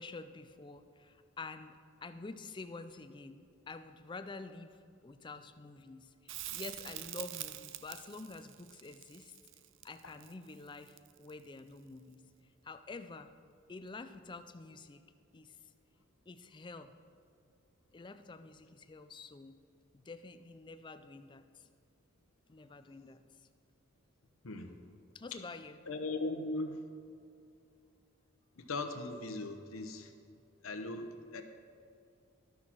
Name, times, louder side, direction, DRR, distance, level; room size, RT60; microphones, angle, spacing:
voice 1, 0.0-4.8 5.0-9.3 9.8-12.2 12.6-13.3 13.7-15.0 15.3-15.6 16.3-16.9 17.9-19.6 19.9-21.7 22.5-23.2 25.1-25.8, left 3 dB, 20° left, 10 dB, 0.4 m, -48 dB
Crackle, 6.3-11.4 14.1-14.2, right 14 dB, 60° right, 0.4 m, -45 dB
voice 2, 25.9-26.8 28.6-30.1 30.6-31.4, left 2 dB, 75° left, 7 dB, 0.9 m, -39 dB
12.5 x 6.2 x 5.9 m, 2.4 s
head